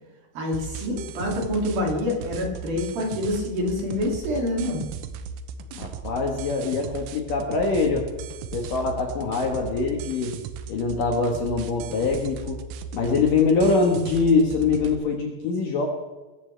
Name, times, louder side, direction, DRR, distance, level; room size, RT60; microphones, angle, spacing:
voice 1, 0.3-4.8, left 1 dB, 55° right, 0 dB, 4.2 m, -26 dB
sound 1, 0.5-15.0, right 6 dB, 85° right, 3.4 m, -37 dB
voice 2, 5.8-8.1 8.5-10.3 10.7-12.6 12.9-15.9, left 4 dB, 60° left, 1 dB, 2.5 m, -23 dB
20.5 x 14.5 x 3.4 m, 1.2 s
omnidirectional pair, 5.5 m